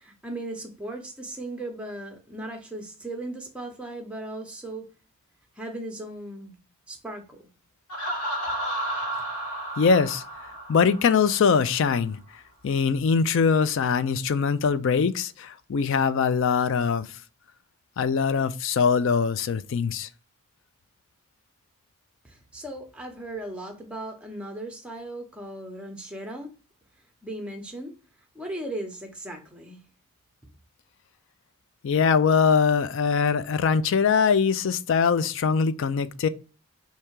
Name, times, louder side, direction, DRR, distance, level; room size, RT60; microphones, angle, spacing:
voice 1, 0.0-4.9 5.6-6.6 6.9-7.4 22.2-26.5 27.2-28.0 28.3-29.8, right 1 dB, 5° right, 0.7 m, -37 dB
Laughter, 7.9-11.6, right 1 dB, 80° left, 1.5 m, -32 dB
voice 2, 9.8-10.2 10.7-12.2 12.6-17.1 18.0-20.1 31.8-36.3, left 5 dB, 55° left, 0.3 m, -22 dB
3.4 x 2.8 x 4.5 m
head